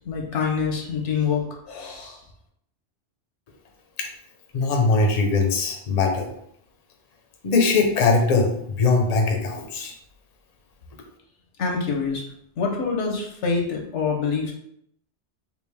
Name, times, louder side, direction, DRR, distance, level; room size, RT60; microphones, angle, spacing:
voice 1, 0.0-2.2 11.6-12.2 12.6-14.5, left 5 dB, 85° left, 1 dB, 1.1 m, -26 dB
voice 2, 4.5-6.3 7.4-9.9, left 3 dB, 45° left, 2 dB, 0.6 m, -21 dB
3.5 x 2.6 x 3.3 m, 0.72 s
omnidirectional pair, 1.2 m